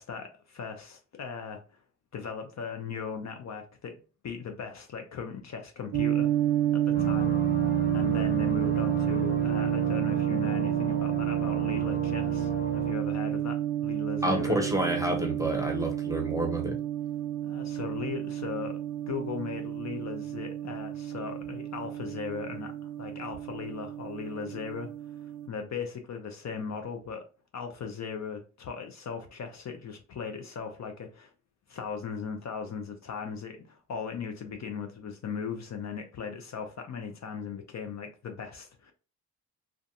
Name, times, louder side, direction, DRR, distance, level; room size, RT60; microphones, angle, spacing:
voice 1, 0.0-1.6 2.1-4.0 4.2-6.3 6.7-7.3 7.6-14.6 17.4-18.8 19.1-27.2 27.5-31.3 31.7-38.9, left 6 dB, 50° left, 0.6 m, -38 dB
sound 1, 5.9-25.5, right 11 dB, 85° right, 0.5 m, -30 dB
sound 2, 6.9-12.9, left 3 dB, 25° left, 1.1 m, -33 dB
voice 2, 14.2-16.7, right 1 dB, 10° right, 0.8 m, -29 dB
2.5 x 2.3 x 2.5 m
cardioid pair, 65°, 35 cm